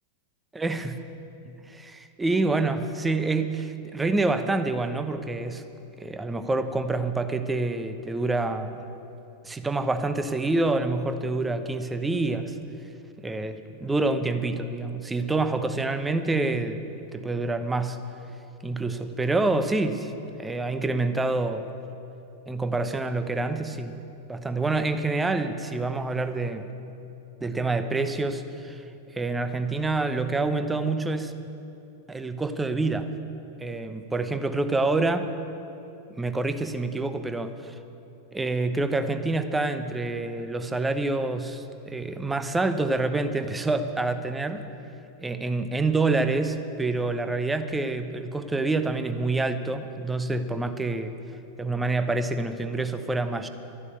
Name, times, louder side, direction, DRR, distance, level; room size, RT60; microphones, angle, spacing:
voice 1, 0.5-0.9 1.7-5.6 6.0-8.8 9.4-12.6 13.2-16.8 17.1-18.0 18.6-20.1 20.4-21.7 22.5-24.0 24.3-26.7 27.4-28.8 29.1-31.3 32.1-33.1 33.6-35.3 36.2-37.7 38.3-44.6 45.2-51.1 51.6-53.5, right 3 dB, 10° right, 10 dB, 0.9 m, -27 dB
12.5 x 11.0 x 8.4 m, 2.8 s
figure-of-eight pair, 90°, 0 cm